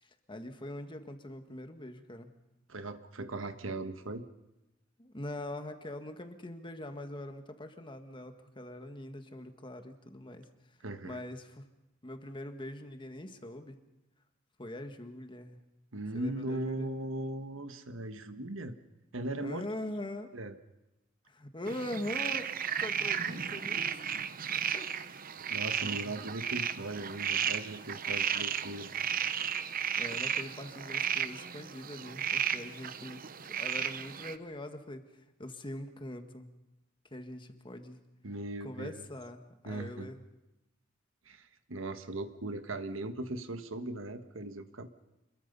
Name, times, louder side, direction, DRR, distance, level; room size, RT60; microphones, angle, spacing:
voice 1, 0.0-2.3 5.0-10.4 11.0-11.6 12.0-13.8 14.6-15.6 16.1-16.9 19.4-20.3 21.3-24.2 24.5-25.1 25.9-26.1 30.0-33.2 33.6-36.5 37.1-38.0 38.6-40.2, left 1 dB, 25° left, 6 dB, 1.7 m, -43 dB
voice 2, 2.7-4.2 10.8-11.2 15.9-18.7 19.1-19.6 20.3-20.5 25.5-28.9 38.2-39.0 39.6-40.1 41.2-44.9, right 2 dB, 80° right, 9 dB, 1.5 m, -38 dB
sound 1, 21.7-34.3, right 8 dB, 45° right, 0.9 m, -34 dB
27.5 x 22.0 x 5.5 m, 0.99 s
head